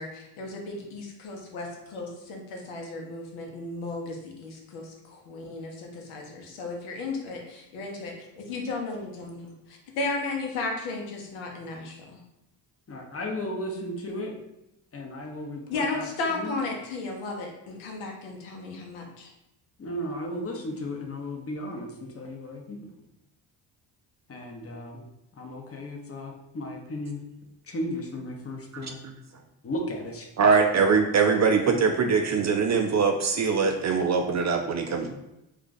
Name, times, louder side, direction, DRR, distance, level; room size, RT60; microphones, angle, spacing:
voice 1, 0.0-9.5 10.0-12.2 15.7-19.3, left 3 dB, 75° left, 1 dB, 0.8 m, -34 dB
voice 2, 12.9-14.3 14.9-16.5 19.8-22.8 24.3-25.0 25.4-27.2 27.7-29.0 29.6-30.3, left 1 dB, 30° left, 2 dB, 0.8 m, -35 dB
voice 3, 28.7-29.1 30.4-35.1, right 5 dB, 35° right, 4 dB, 0.4 m, -23 dB
2.4 x 2.3 x 3.9 m, 0.87 s
hypercardioid pair, 50°, 50 cm